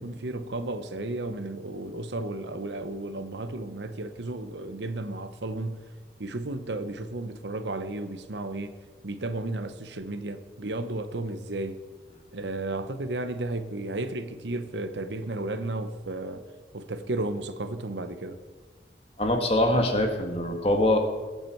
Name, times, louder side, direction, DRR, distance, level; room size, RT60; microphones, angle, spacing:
voice 1, 0.0-5.9 6.2-8.7 9.0-11.8 12.3-16.4 16.7-18.4, right 2 dB, 90° right, 1.0 m, -33 dB
voice 2, 19.2-21.0, left 1 dB, 35° left, 1.7 m, -23 dB
21.5 x 8.3 x 4.6 m
head